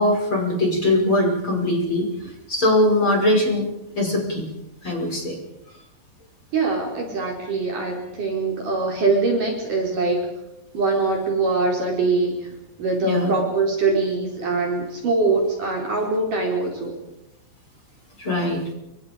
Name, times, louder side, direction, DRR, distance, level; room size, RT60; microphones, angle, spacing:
voice 1, 0.0-3.6 4.0-4.5 4.8-5.4 13.0-13.4 18.2-18.6, left 1 dB, 25° left, 0 dB, 6.2 m, -21 dB
voice 2, 6.5-10.3 10.7-12.5 12.8-17.0, right 3 dB, 45° right, 0 dB, 5.8 m, -23 dB
29.0 x 26.0 x 5.3 m, 0.87 s
omnidirectional pair, 5.5 m